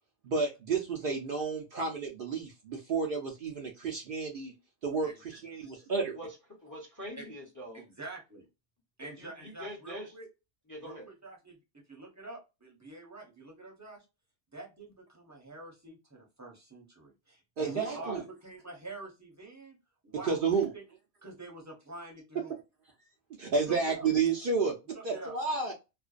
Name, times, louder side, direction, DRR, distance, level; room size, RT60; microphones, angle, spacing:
voice 1, 0.2-4.5 4.8-6.2 17.6-18.2 20.2-20.7 23.4-24.8 25.0-25.7, right 4 dB, 60° right, 0.6 m, -31 dB
voice 2, 6.6-7.8 9.0-10.1 10.7-11.1 17.6-18.2, equal, 20° left, 0.7 m, -43 dB
voice 3, 7.7-8.5 9.0-10.3 10.8-14.0 14.5-19.8 20.0-20.8 21.2-22.6 23.6-24.1 24.9-25.4, right 2 dB, 15° right, 0.7 m, -46 dB
2.5 x 2.2 x 2.3 m
omnidirectional pair, 1.2 m